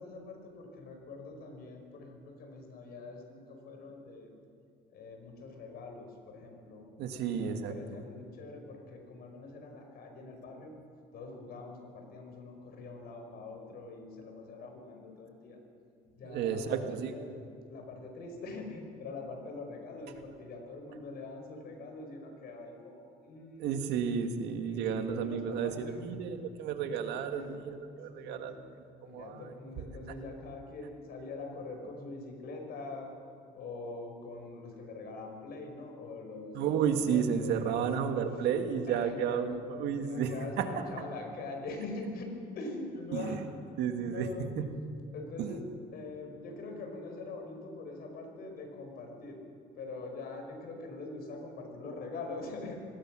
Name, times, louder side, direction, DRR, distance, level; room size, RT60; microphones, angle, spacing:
voice 1, 0.0-4.3 4.9-6.8 7.1-10.8 11.1-15.6 16.1-17.3 17.7-23.7 24.6-26.1 27.3-27.6 28.1-28.6 29.0-33.1 33.5-38.1 38.9-39.5 40.0-43.4 44.0-44.5 45.1-49.4 49.7-52.8, left 3 dB, 65° left, 3 dB, 5.1 m, -44 dB
voice 2, 7.0-7.7 16.2-17.1 23.6-28.6 29.1-29.5 36.5-40.9 43.1-43.4 43.8-44.7 45.4-45.6, right 7 dB, 85° right, 7 dB, 1.9 m, -32 dB
25.5 x 19.0 x 6.3 m, 2.5 s
cardioid pair, 110°, 17 cm